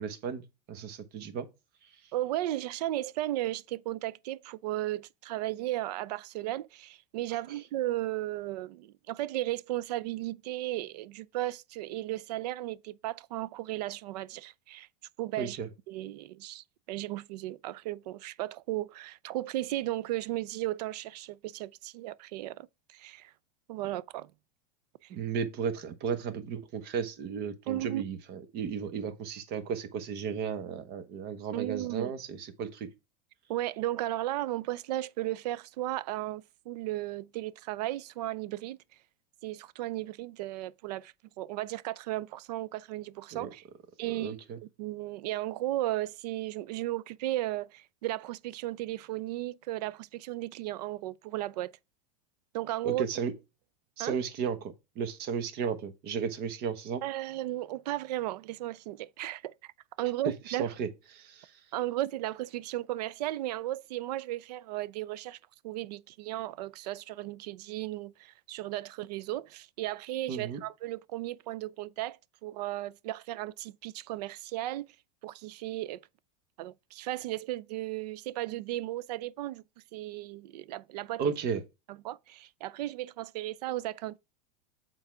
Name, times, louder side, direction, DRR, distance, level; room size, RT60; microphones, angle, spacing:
voice 1, 0.0-1.5 1.8-2.1 7.3-7.6 15.4-15.7 25.1-32.9 43.3-43.5 44.1-44.6 52.8-53.3 54.0-57.0 60.0-60.9 61.1-61.6 70.3-70.6 81.2-81.6, right 6 dB, 50° right, 1.3 m, -34 dB
voice 2, 2.1-14.9 15.2-15.6 15.9-23.3 23.7-24.3 25.0-25.1 27.7-28.0 31.5-32.1 33.5-38.8 39.4-43.6 44.0-44.4 44.8-51.7 52.5-53.0 54.0-54.1 57.0-59.7 60.0-60.7 61.7-65.4 65.6-74.9 75.2-76.1 76.6-79.6 79.9-81.2 82.0-84.2, right 15 dB, 75° right, 0.5 m, -35 dB
7.1 x 3.9 x 4.7 m
supercardioid pair, 115°, 21 cm